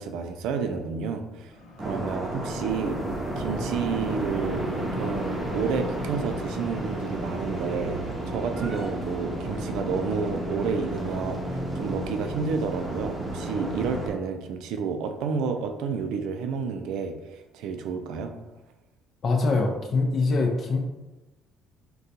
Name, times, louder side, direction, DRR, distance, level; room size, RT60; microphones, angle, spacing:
voice 1, 0.0-1.5 1.8-3.0 3.4-18.4, right 5 dB, 80° right, 6 dB, 0.3 m, -30 dB
sound 1, 1.5-13.6, equal, 75° left, 0.8 m, -45 dB
sound 2, 1.8-14.1, right 1 dB, 20° right, 0.7 m, -32 dB
sound 3, 2.7-7.6, right 1 dB, 15° left, 0.9 m, -40 dB
voice 2, 19.2-20.8, left 3 dB, 45° left, 2 dB, 0.5 m, -23 dB
3.8 x 2.3 x 2.7 m, 1.1 s
cardioid pair, 95°, 0 cm